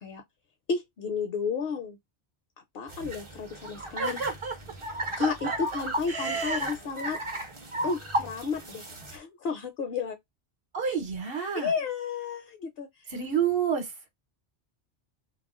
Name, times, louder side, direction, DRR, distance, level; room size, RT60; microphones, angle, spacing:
voice 1, 0.7-2.0 2.7-4.2 5.2-7.2 7.8-10.2 10.8-10.9 11.5-12.9, left 5 dB, 65° left, 0.7 m, -32 dB
sound 1, 2.9-9.2, right 1 dB, 35° right, 0.6 m, -35 dB
voice 2, 4.0-4.5 5.2-5.8 6.1-6.7 10.7-11.7 13.1-13.9, right 6 dB, 55° right, 1.0 m, -30 dB
2.3 x 2.0 x 3.5 m
omnidirectional pair, 1.2 m